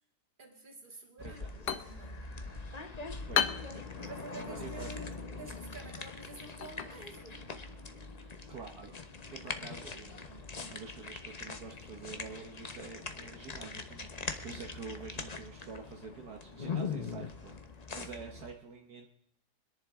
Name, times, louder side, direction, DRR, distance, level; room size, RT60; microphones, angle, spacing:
voice 1, 0.4-2.3 4.0-7.5 9.4-9.6 17.9-18.3, right 3 dB, 30° right, 1 dB, 2.6 m, -49 dB
voice 2, 0.9-1.5 3.3-4.1 4.4-4.9 8.2-8.9 9.3-17.6 17.9-19.1, right 5 dB, 70° right, 2 dB, 1.7 m, -47 dB
sound 1, 1.2-18.5, left 4 dB, 30° left, 0.8 m, -42 dB
sound 2, 1.3-8.8, left 8 dB, 80° left, 1.5 m, -39 dB
sound 3, 12.4-17.4, left 11 dB, 5° left, 3.0 m, -69 dB
25.5 x 10.5 x 3.6 m, 0.71 s
omnidirectional pair, 1.8 m